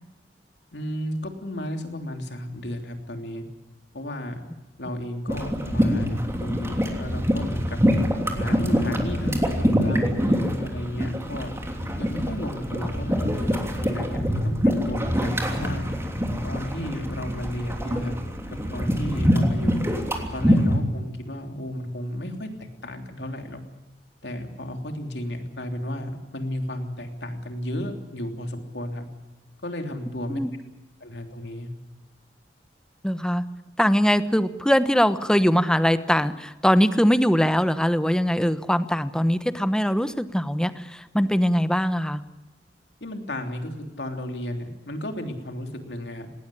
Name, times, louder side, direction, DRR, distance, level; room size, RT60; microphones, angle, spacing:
voice 1, 0.7-3.4 3.9-4.4 4.8-7.8 8.3-11.5 12.0-15.9 16.4-18.2 18.5-19.9 20.3-23.6 24.2-29.1 29.6-30.4 31.0-31.7 43.0-46.3, left 1 dB, 75° left, 5 dB, 3.2 m, -33 dB
sound 1, 5.3-20.8, equal, 15° right, 3.1 m, -25 dB
voice 2, 33.0-33.4 33.8-42.2, equal, 5° left, 12 dB, 1.0 m, -22 dB
19.5 x 18.5 x 10.0 m, 1.0 s
head